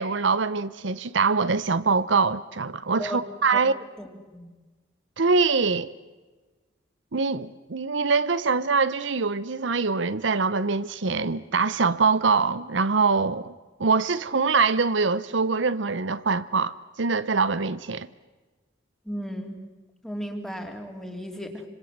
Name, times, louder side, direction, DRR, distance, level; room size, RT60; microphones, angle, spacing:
voice 1, 0.0-3.7 5.2-5.9 7.1-13.5 13.8-18.1, right 4 dB, 75° right, 0.8 m, -24 dB
voice 2, 4.0-4.5 19.0-19.6 20.0-21.6, equal, ahead, 3.1 m, -35 dB
26.5 x 26.0 x 7.4 m
head